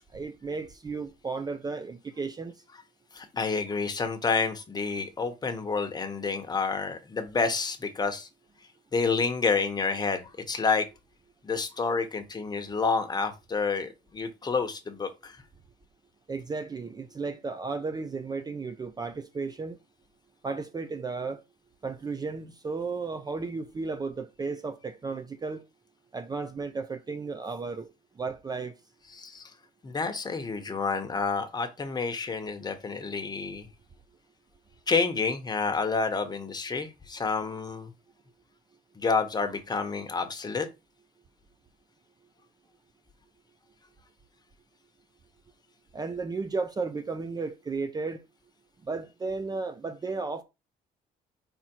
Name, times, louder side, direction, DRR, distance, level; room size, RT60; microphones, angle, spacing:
voice 1, 0.1-2.5 16.3-19.8 20.4-21.4 21.8-25.6 26.1-27.9 28.2-28.7 45.9-48.2 48.8-50.4, right 4 dB, 25° right, 0.6 m, -34 dB
voice 2, 3.1-8.3 8.9-10.9 11.4-15.4 29.1-29.4 29.8-33.7 34.9-37.9 38.9-40.7, left 4 dB, 25° left, 1.2 m, -29 dB
5.2 x 4.2 x 4.5 m
cardioid pair, 110°, 17 cm